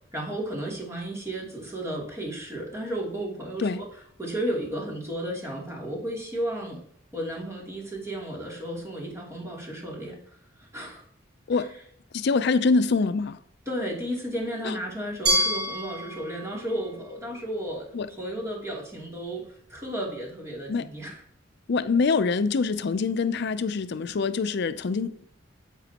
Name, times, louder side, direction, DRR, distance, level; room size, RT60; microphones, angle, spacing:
voice 1, 0.1-3.9 4.2-6.8 7.1-10.2 10.6-11.0 11.5-11.7 13.7-21.1, right 1 dB, 15° right, 2.8 m, -33 dB
voice 2, 12.1-13.4 14.6-14.7 17.9-18.1 20.7-20.9 21.7-25.3, left 4 dB, 60° left, 0.5 m, -25 dB
Glass, 15.3-18.2, equal, 60° right, 3.9 m, -29 dB
9.2 x 8.1 x 2.9 m
head